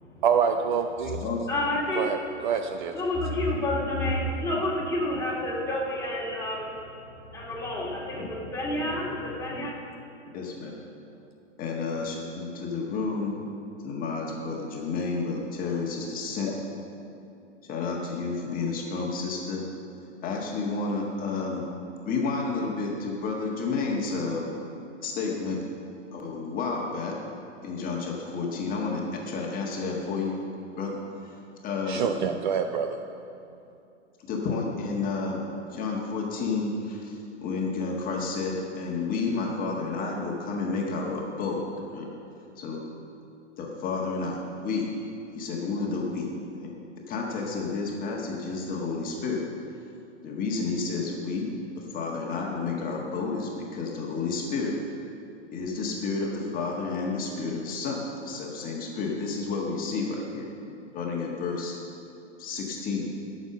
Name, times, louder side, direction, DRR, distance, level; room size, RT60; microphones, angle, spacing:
voice 1, 0.2-1.2 2.0-2.2 2.4-2.9 31.9-33.0, right 7 dB, 40° right, 7 dB, 0.5 m, -26 dB
voice 2, 1.5-2.0 2.9-9.7, left 1 dB, 10° left, -5 dB, 2.4 m, -29 dB
voice 3, 10.3-10.8 11.6-13.3 13.8-16.5 17.7-19.6 20.2-21.7 22.0-24.5 25.0-25.6 26.1-27.2 27.6-30.3 30.8-31.3 31.6-32.0 34.3-35.4 35.7-41.6 41.9-42.1 42.6-42.8 43.6-44.9 45.3-46.3 46.6-46.7 47.1-49.4 50.2-51.5 51.8-54.8 55.5-60.5 60.9-61.7 62.4-63.1, left 4 dB, 25° left, -1 dB, 1.5 m, -30 dB
12.0 x 6.6 x 6.6 m, 2.7 s
figure-of-eight pair, 115°, 37 cm